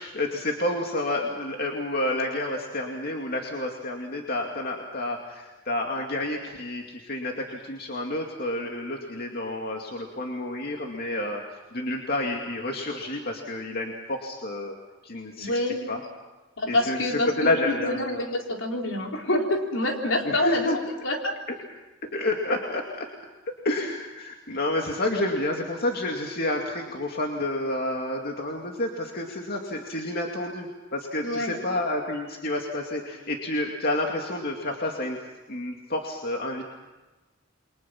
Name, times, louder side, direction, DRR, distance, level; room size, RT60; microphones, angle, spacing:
voice 1, 0.0-11.4 11.7-14.8 15.0-15.5 15.9-16.0 16.7-18.3 20.2-20.8 22.1-23.1 23.6-35.2 35.5-36.6, left 1 dB, 55° left, 1 dB, 2.4 m, -29 dB
voice 2, 15.4-15.9 16.6-17.5 17.8-20.8 21.0-21.4 31.2-31.6, left 1 dB, 75° left, 1 dB, 4.1 m, -27 dB
29.0 x 24.0 x 5.9 m, 1.1 s
head